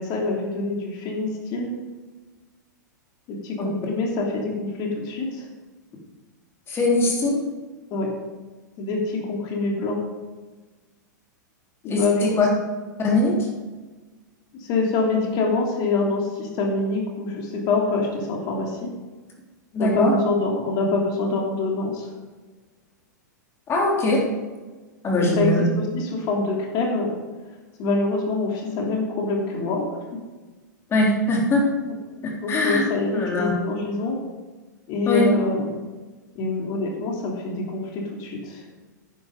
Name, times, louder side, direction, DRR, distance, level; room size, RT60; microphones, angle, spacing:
voice 1, 0.0-1.7 3.3-5.4 7.9-8.1 8.8-10.0 11.8-12.2 14.5-18.9 19.8-22.1 25.2-27.1 27.8-29.8 32.4-34.2 34.9-35.7 36.3-38.8, left 3 dB, 45° left, 0 dB, 3.1 m, -25 dB
voice 2, 6.7-7.4 11.9-12.5 13.0-13.5 19.7-20.2 23.7-24.2 25.0-25.6 30.9-31.7 32.2-32.8 33.1-33.5 35.1-35.3, left 1 dB, 25° left, -2 dB, 3.6 m, -21 dB
10.5 x 9.7 x 5.4 m, 1.3 s
hypercardioid pair, 110°, 10 cm